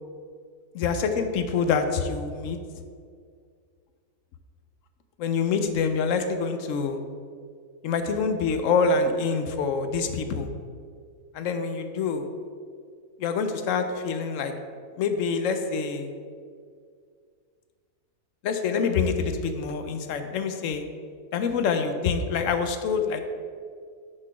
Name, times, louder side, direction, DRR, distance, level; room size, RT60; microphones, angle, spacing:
voice 1, 0.7-2.6 5.2-7.0 7.8-10.5 11.3-12.3 13.2-14.5 15.0-16.1 18.4-20.8 21.3-23.2, left 5 dB, 65° left, 7 dB, 0.8 m, -26 dB
6.5 x 4.0 x 5.9 m, 2.1 s
omnidirectional pair, 1.7 m